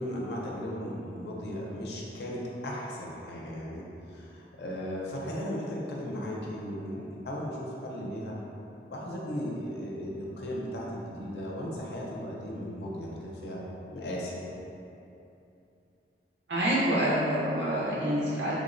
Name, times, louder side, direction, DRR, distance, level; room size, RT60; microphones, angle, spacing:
voice 1, 0.0-3.8 4.1-8.4 8.9-13.6 13.9-14.5, equal, 70° left, -3 dB, 0.5 m, -36 dB
voice 2, 16.5-18.5, right 1 dB, 85° right, -8 dB, 0.8 m, -27 dB
3.5 x 2.0 x 2.4 m, 2.8 s
head